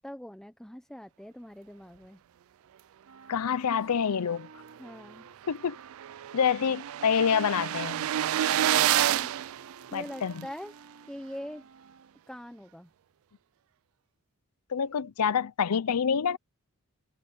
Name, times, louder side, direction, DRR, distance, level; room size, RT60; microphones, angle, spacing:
voice 1, 0.0-2.2 4.8-5.3 8.6-9.3 9.9-10.7 11.1-11.6 12.3-12.9, equal, 5° left, 0.6 m, -43 dB
sound 1, 3.0-12.2, right 4 dB, 90° right, 1.5 m, -54 dB
voice 2, 3.3-4.5 5.5-5.8 6.3-8.1 9.9-10.3 14.7-16.4, left 7 dB, 90° left, 0.6 m, -27 dB
sound 2, 4.9-5.0 5.3-5.4 5.5-10.4, right 12 dB, 65° right, 0.3 m, -29 dB
head